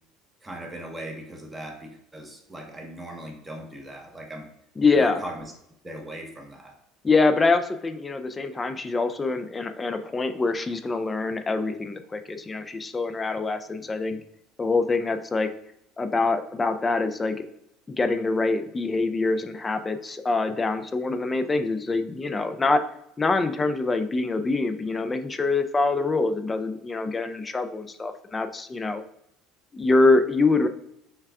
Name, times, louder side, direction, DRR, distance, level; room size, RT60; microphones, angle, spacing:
voice 1, 0.4-4.5 4.9-5.4 5.8-6.8, right 1 dB, 10° right, 2 dB, 0.9 m, -39 dB
voice 2, 4.8-5.2 7.0-14.2 14.6-15.5 16.0-17.4 17.9-22.8 23.2-29.0 29.7-30.7, left 3 dB, 15° left, 9 dB, 0.4 m, -24 dB
5.7 x 2.3 x 3.4 m, 0.77 s
cardioid pair, 140°, 0 cm